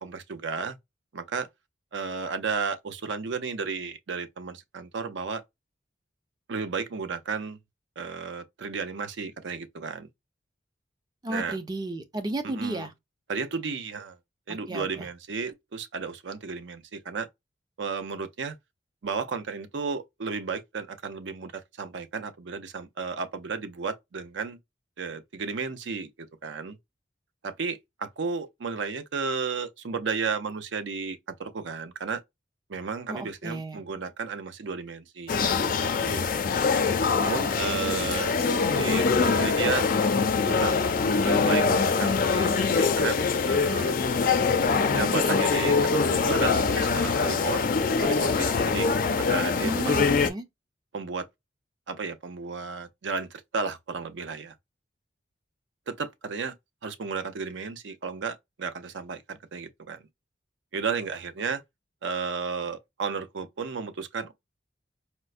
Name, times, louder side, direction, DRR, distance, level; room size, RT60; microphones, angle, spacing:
voice 1, 0.0-0.8 1.1-1.5 1.9-5.4 6.5-7.6 8.0-10.1 11.3-11.6 12.4-12.9 13.3-14.2 14.5-17.3 17.8-18.6 19.0-24.6 25.0-26.8 27.4-32.2 32.7-36.3 37.2-38.4 38.7-39.9 40.5-40.7 41.2-43.2 43.4-43.9 44.9-47.6 48.0-50.1 50.9-51.2 51.9-54.5 55.9-56.5 56.8-60.1 60.7-61.6 62.0-64.3, right 5 dB, 75° right, 0.5 m, -33 dB
voice 2, 11.2-12.9 14.5-15.1 33.1-33.8 49.6-50.4, right 1 dB, 20° right, 0.4 m, -33 dB
sound 1, 35.3-50.3, left 5 dB, 45° left, 0.4 m, -24 dB
4.4 x 2.1 x 2.4 m
head